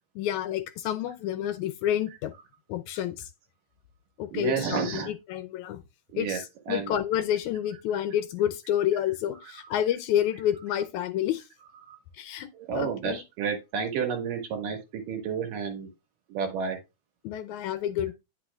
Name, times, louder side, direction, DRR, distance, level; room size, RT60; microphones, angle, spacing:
voice 1, 0.2-2.3 2.7-3.3 4.2-5.8 6.1-11.5 12.1-12.5 12.7-13.2 17.2-18.1, left 11 dB, 75° left, 1.9 m, -29 dB
voice 2, 4.3-5.1 6.1-6.4 6.7-6.9 9.5-9.7 11.8-12.0 12.5-15.9 16.3-16.8, right 6 dB, 85° right, 3.3 m, -31 dB
10.5 x 6.0 x 2.4 m
omnidirectional pair, 3.7 m